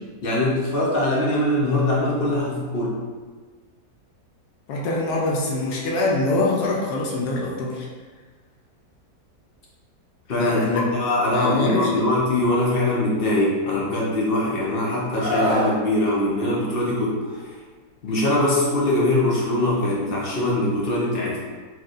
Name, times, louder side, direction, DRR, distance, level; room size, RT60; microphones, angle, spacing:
voice 1, 0.2-3.0 10.3-17.2 18.0-21.4, left 1 dB, 50° left, -4 dB, 0.7 m, -22 dB
voice 2, 4.7-7.9 10.4-10.8 11.3-12.1, left 2 dB, 85° left, -2 dB, 1.2 m, -24 dB
Screaming, 15.2-15.7 17.2-17.4, equal, 35° left, 1.3 m, -24 dB
4.3 x 2.9 x 2.5 m, 1.4 s
omnidirectional pair, 1.7 m